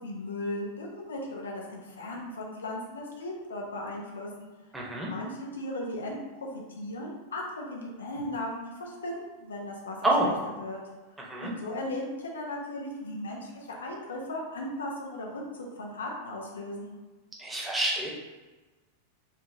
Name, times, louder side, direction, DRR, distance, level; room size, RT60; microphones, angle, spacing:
voice 1, 0.0-4.5 5.1-10.8 11.4-16.9, left 1 dB, 70° left, -1 dB, 0.7 m, -37 dB
voice 2, 4.7-5.1 10.0-10.3 11.2-11.5 17.4-18.1, right 1 dB, 5° right, -3 dB, 0.9 m, -27 dB
5.2 x 2.5 x 2.7 m, 1.2 s
figure-of-eight pair, 90°, 0 cm